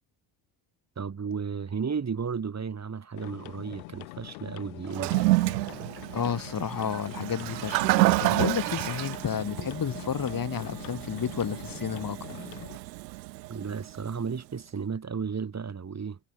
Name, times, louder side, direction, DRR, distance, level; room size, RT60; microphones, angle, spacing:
voice 1, 0.9-5.2 13.5-16.2, right 6 dB, 35° right, 3.3 m, -33 dB
sound 1, 3.1-12.8, left 40 dB or more, 80° left, 5.1 m, -44 dB
Toilet flush, 4.9-14.2, right 21 dB, 90° right, 1.0 m, -29 dB
voice 2, 6.1-7.9 8.2-12.2, left 7 dB, 45° left, 4.7 m, -31 dB
hypercardioid pair, 60°, 49 cm